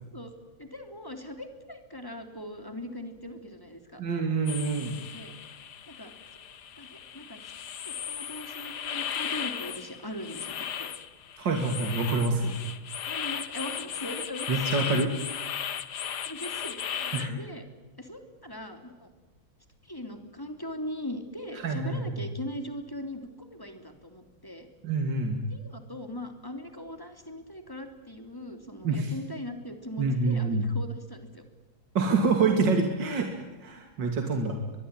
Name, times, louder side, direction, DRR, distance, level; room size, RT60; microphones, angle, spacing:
voice 1, 0.6-4.0 5.1-5.4 5.9-6.1 6.8-7.5 7.8-10.9 13.1-14.6 16.2-17.6 18.0-19.1 19.8-24.7 25.5-31.4, left 1 dB, 10° left, 6 dB, 3.2 m, -40 dB
voice 2, 4.0-5.0 11.4-12.5 14.5-15.1 17.1-17.3 21.6-22.2 24.8-25.4 28.8-29.1 30.0-30.6 31.9-33.3 33.6-34.6, right 4 dB, 60° right, 4 dB, 3.2 m, -26 dB
sound 1, 4.5-17.3, left 8 dB, 55° left, 1.6 m, -36 dB
24.0 x 22.0 x 9.1 m, 1.2 s
omnidirectional pair, 2.2 m